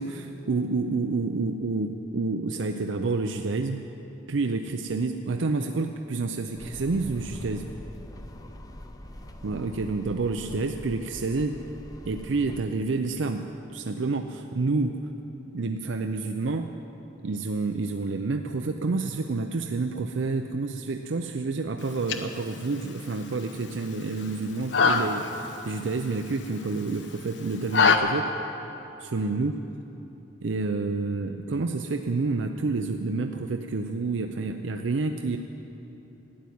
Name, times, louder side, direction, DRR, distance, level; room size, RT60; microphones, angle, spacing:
voice 1, 0.0-3.8 4.3-7.7 9.4-11.6 12.1-15.0 15.5-16.7 17.2-28.3 29.0-29.6 30.4-35.4, right 3 dB, 85° right, 5 dB, 0.6 m, -29 dB
sound 1, 6.6-12.6, left 1 dB, 20° left, 0.7 m, -43 dB
sound 2, 21.8-28.0, left 5 dB, 70° left, 0.9 m, -27 dB
12.5 x 9.5 x 9.3 m, 3.0 s
head